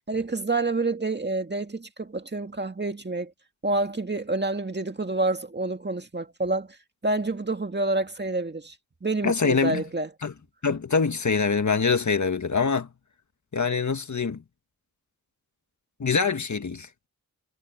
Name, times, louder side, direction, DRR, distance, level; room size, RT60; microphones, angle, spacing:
voice 1, 0.1-3.3 3.6-6.8 7.0-8.8 9.0-10.1, right 2 dB, 30° right, 2.1 m, -28 dB
voice 2, 9.2-9.8 10.2-10.3 10.6-12.9 13.5-14.4 16.0-16.9, left 5 dB, 50° left, 1.7 m, -24 dB
wide cardioid pair, 75°, 36 cm